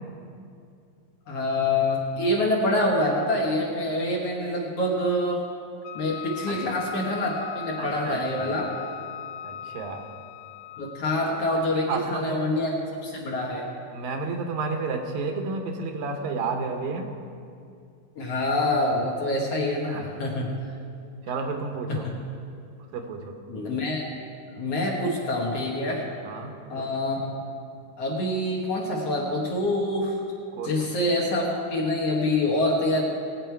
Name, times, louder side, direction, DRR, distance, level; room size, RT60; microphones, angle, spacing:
voice 1, 1.3-5.4 5.9-8.7 10.8-12.7 13.0-13.7 18.2-20.5 21.9-22.0 23.5-24.1 24.6-26.1 26.7-27.3 28.0-30.2 30.6-33.0, left 1 dB, 55° left, -2 dB, 2.0 m, -26 dB
Wind instrument woodwind instrument, 5.8-11.0, left 9 dB, 90° left, 2.3 m, -39 dB
voice 2, 7.8-8.5 9.4-10.1 11.9-12.4 13.9-17.1 19.9-20.2 21.3-22.1 22.9-23.3 26.2-26.9 30.5-30.8, right 4 dB, 80° right, 5 dB, 2.8 m, -31 dB
19.5 x 8.8 x 4.6 m, 2.4 s
omnidirectional pair, 4.0 m